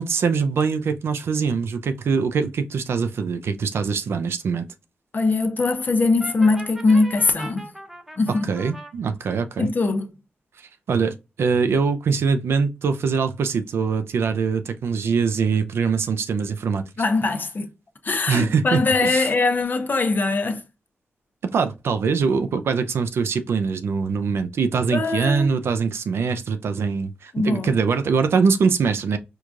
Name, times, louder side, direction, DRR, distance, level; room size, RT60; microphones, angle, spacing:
voice 1, 0.0-4.7 8.4-9.7 10.6-16.9 18.3-19.3 21.4-29.2, right 5 dB, 80° right, 0.4 m, -23 dB
voice 2, 5.1-7.7 8.2-8.5 9.6-10.2 17.0-17.7 18.0-20.6 24.9-25.5 27.3-27.8, left 3 dB, 50° left, 0.7 m, -21 dB
Brass instrument, 6.2-8.9, right 1 dB, 5° right, 0.8 m, -39 dB
4.6 x 2.3 x 2.5 m
cardioid pair, 65°, 4 cm